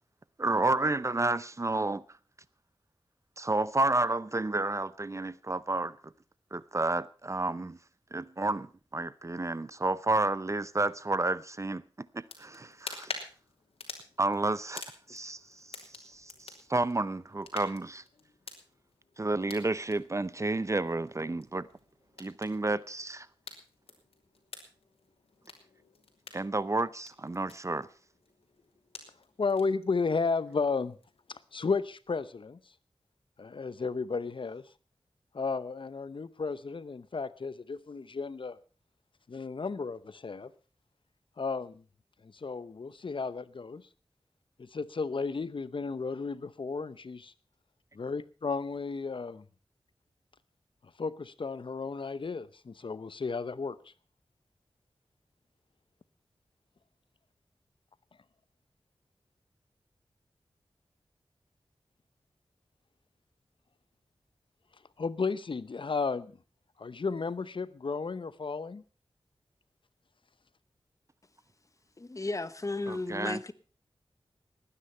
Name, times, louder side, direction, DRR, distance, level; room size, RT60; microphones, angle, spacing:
voice 1, 0.4-2.0 3.4-6.1 6.5-7.8 8.1-13.1 14.2-18.0 19.2-21.7 22.2-23.3 26.3-27.9 72.9-73.4, right 2 dB, 30° right, 0.6 m, -31 dB
sound 1, 12.2-31.8, left 4 dB, 90° left, 3.0 m, -49 dB
voice 2, 29.4-31.0 31.3-32.6 33.4-34.6 35.3-38.6 39.3-40.5 41.4-41.8 42.2-43.8 44.6-47.3 47.9-49.4 51.0-53.8 65.0-66.3 66.8-68.8, left 4 dB, 60° left, 0.8 m, -33 dB
voice 3, 72.0-73.5, left 2 dB, 35° left, 1.1 m, -34 dB
19.5 x 9.9 x 5.5 m
wide cardioid pair, 65°, 10 cm